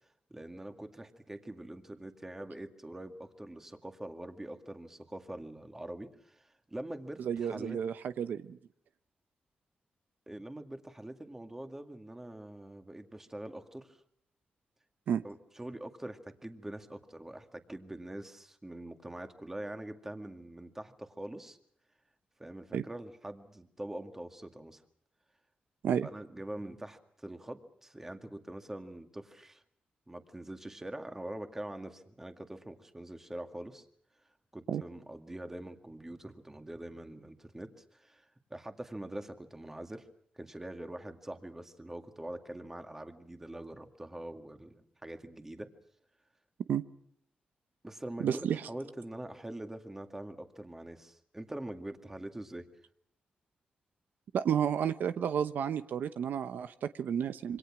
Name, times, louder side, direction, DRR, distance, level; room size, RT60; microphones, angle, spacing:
voice 1, 0.3-7.8 10.3-14.0 15.2-21.6 22.4-24.8 26.0-29.6 30.1-33.9 34.5-40.1 40.4-45.7 47.8-52.7, right 1 dB, 10° right, 7 dB, 2.1 m, -44 dB
voice 2, 7.2-8.6 15.1-15.2 22.7-22.8 25.8-26.1 34.7-34.8 46.7-46.8 48.2-48.6 54.3-57.6, right 8 dB, 80° right, 12 dB, 0.9 m, -31 dB
27.0 x 25.0 x 6.1 m, 0.69 s
wide cardioid pair, 130°, 3 cm